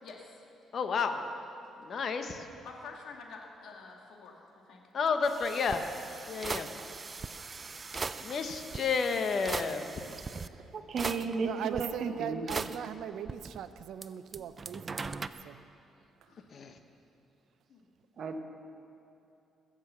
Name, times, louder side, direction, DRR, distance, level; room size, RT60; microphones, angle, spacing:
voice 1, 0.0-0.4 2.6-4.8 16.3-16.8 17.7-17.9, left 4 dB, 75° left, 0 dB, 2.2 m, -49 dB
voice 2, 0.7-1.2 1.8-2.5 4.9-5.8 6.3-6.7 8.2-9.8 16.5-16.7, left 5 dB, 55° left, 7 dB, 1.2 m, -31 dB
sound 1, 5.2-10.5 11.0-11.8 12.5-14.1 14.3-15.3, right 4 dB, 35° right, 0.5 m, -39 dB
voice 3, 10.7-12.5 18.2-18.4, right 4 dB, 55° right, 5 dB, 1.4 m, -34 dB
voice 4, 11.4-15.6 16.2-16.3, right 9 dB, 80° right, 12 dB, 0.6 m, -40 dB
22.0 x 7.5 x 7.0 m, 2.7 s
cardioid pair, 90°, 0 cm